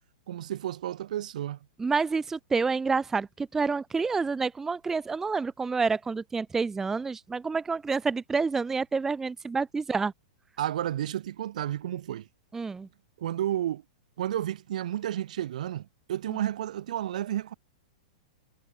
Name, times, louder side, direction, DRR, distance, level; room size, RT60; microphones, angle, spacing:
voice 1, 0.3-1.6 10.6-12.3 13.2-13.8 14.2-17.5, right 12 dB, 75° right, 1.1 m, -31 dB
voice 2, 1.8-10.1 12.5-12.9 16.3-16.4, right 4 dB, 10° right, 0.4 m, -28 dB
hypercardioid pair, 140°, 4 cm